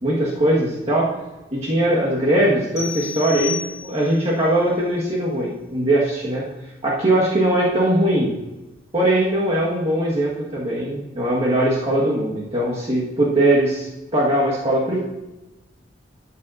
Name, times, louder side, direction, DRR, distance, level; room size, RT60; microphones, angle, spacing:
voice 1, 0.0-1.1 1.5-3.6 3.9-6.4 6.8-8.3 8.9-15.0, right 1 dB, 35° right, -5 dB, 1.5 m, -20 dB
sound 1, 2.8-4.3, left 5 dB, 15° left, 2.6 m, -31 dB
12.5 x 7.4 x 2.6 m, 1.0 s
head